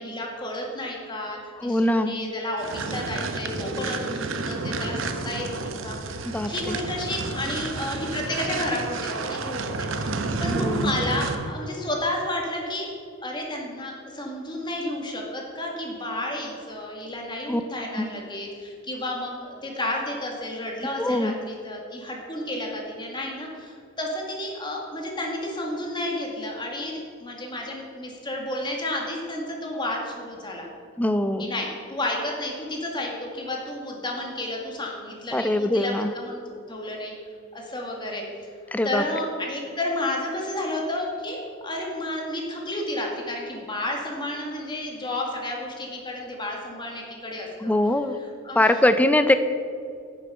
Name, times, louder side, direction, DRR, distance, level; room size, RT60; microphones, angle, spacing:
voice 1, 0.0-12.9 13.2-30.7 31.4-37.1 37.5-38.5 38.8-47.7 48.4-48.8, left 1 dB, 25° left, 0 dB, 1.8 m, -31 dB
voice 2, 1.6-2.1 6.2-6.8 10.5-10.9 17.5-17.6 18.0-18.1 21.0-21.4 31.0-31.5 35.3-36.1 38.7-39.0 47.6-48.2 48.5-49.3, left 1 dB, 10° left, 10 dB, 0.4 m, -22 dB
sound 1, 2.6-11.6, right 3 dB, 70° right, 0.7 m, -30 dB
10.5 x 6.6 x 5.5 m, 2.3 s
head